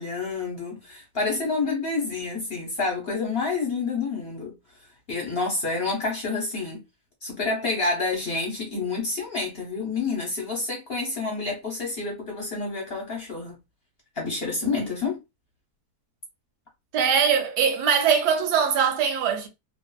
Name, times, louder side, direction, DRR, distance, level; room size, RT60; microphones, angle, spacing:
voice 1, 0.0-4.5 5.1-6.8 7.2-13.6 14.2-15.2, left 3 dB, 45° left, 0.9 m, -28 dB
voice 2, 16.9-19.5, right 7 dB, 85° right, 1.3 m, -22 dB
2.6 x 2.4 x 2.3 m
omnidirectional pair, 1.7 m